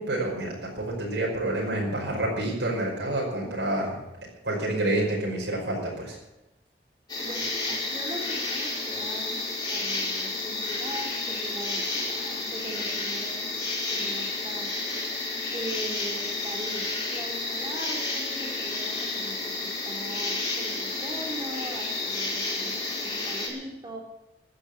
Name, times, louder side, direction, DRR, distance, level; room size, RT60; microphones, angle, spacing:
voice 1, 0.0-4.0 4.4-6.2, right 1 dB, 80° right, -3 dB, 5.3 m, -28 dB
sound 1, 7.1-23.5, left 2 dB, 25° left, 4.9 m, -31 dB
voice 2, 7.2-9.4 9.7-13.6 13.9-14.8 15.5-24.0, equal, 25° right, 0 dB, 3.7 m, -40 dB
15.5 x 10.0 x 8.2 m, 0.94 s
head